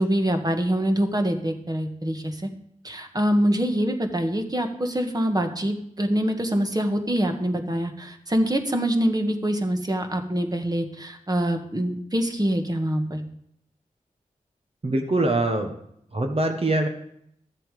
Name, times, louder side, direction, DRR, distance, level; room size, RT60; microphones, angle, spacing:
voice 1, 0.0-2.5 2.8-13.3, equal, 25° right, 5 dB, 1.6 m, -25 dB
voice 2, 14.8-15.7 16.1-16.9, right 2 dB, 45° right, 3 dB, 1.3 m, -23 dB
12.5 x 7.6 x 4.9 m, 0.72 s
cardioid pair, 45°, 14 cm